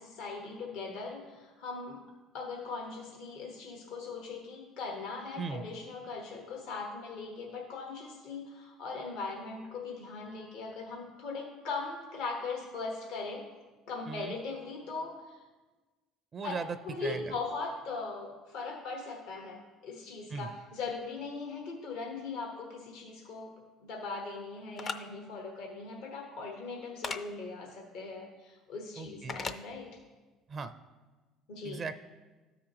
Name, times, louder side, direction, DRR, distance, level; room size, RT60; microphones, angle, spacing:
voice 1, 0.0-2.0 2.3-13.4 13.9-15.4 16.4-16.5 16.8-23.5 23.8-29.9 31.5-31.8, left 4 dB, 75° left, 0 dB, 1.2 m, -40 dB
voice 2, 16.3-17.3 20.3-20.5 29.0-29.4 30.5-30.7 31.6-32.0, right 5 dB, 40° right, 11 dB, 0.4 m, -38 dB
sound 1, 24.8-25.0 27.0-27.2 29.3-29.6, left 4 dB, 40° left, 0.5 m, -35 dB
13.0 x 4.9 x 2.9 m, 1.3 s
supercardioid pair, 75°, 0 cm